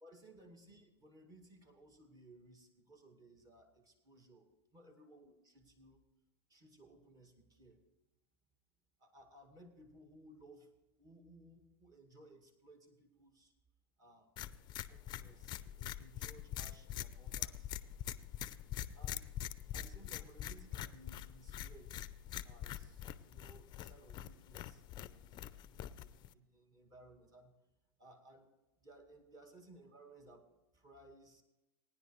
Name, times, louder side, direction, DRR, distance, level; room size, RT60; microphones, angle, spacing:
voice 1, 0.0-6.0 6.5-7.8 9.0-10.7 11.0-13.5 14.0-14.3 14.9-17.7 18.9-19.3 19.7-22.0 22.4-27.5 28.0-28.5 28.8-31.4, right 1 dB, 30° right, 2 dB, 2.1 m, -60 dB
sound 1, 14.4-26.3, left 11 dB, 35° left, 0.5 m, -44 dB
18.5 x 10.0 x 3.1 m, 1.0 s
hypercardioid pair, 100°, 13 cm